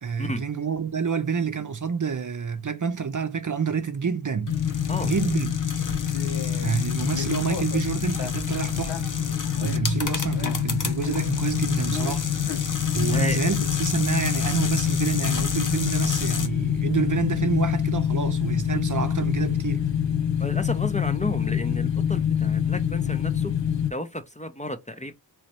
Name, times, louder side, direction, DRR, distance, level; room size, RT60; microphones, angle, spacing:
voice 1, 0.0-4.6 5.0-5.6 6.6-9.1 9.6-12.2 12.9-19.8, right 6 dB, 45° right, 0.6 m, -28 dB
sound 1, 4.5-23.9, left 9 dB, 90° left, 0.7 m, -26 dB
sound 2, 4.5-16.5, left 4 dB, 45° left, 0.8 m, -34 dB
voice 2, 20.4-23.5 23.9-25.1, left 1 dB, 15° left, 0.6 m, -32 dB
3.1 x 3.1 x 2.9 m
wide cardioid pair, 55°, 43 cm